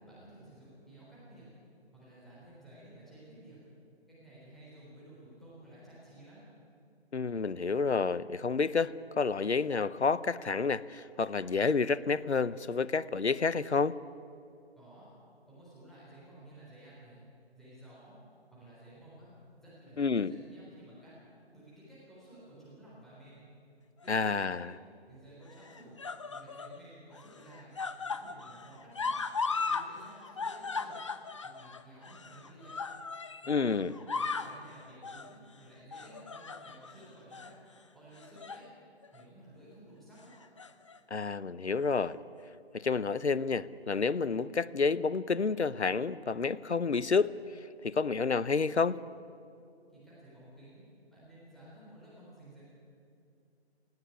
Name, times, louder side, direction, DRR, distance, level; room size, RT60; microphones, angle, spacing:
voice 1, 0.1-1.5 1.9-3.7 4.1-6.4 14.8-15.1 15.5-17.2 17.5-18.2 18.5-19.3 19.6-21.1 21.5-23.5 24.0-24.6 25.1-26.0 26.3-27.7 28.0-29.2 29.6-30.9 31.4-32.8 33.4-37.5 37.9-38.7 39.1-40.3 49.9-50.8 51.1-52.6, right 1 dB, ahead, -10 dB, 3.7 m, -54 dB
voice 2, 7.1-14.0 20.0-20.3 24.1-24.7 33.5-33.9 41.1-42.2 42.7-47.4 47.8-49.0, left 4 dB, 90° left, 19 dB, 0.7 m, -29 dB
sound 1, 24.0-24.6 25.5-26.8 27.1-29.9 30.1-33.6 33.9-34.6 35.0-35.3 35.9-36.9 37.3-37.5 38.2-38.7 39.0-39.2 40.3-41.0 41.9-42.0, left 4 dB, 30° left, 0.6 m, -37 dB
18.5 x 15.5 x 9.7 m, 2.5 s
figure-of-eight pair, 150°, 33 cm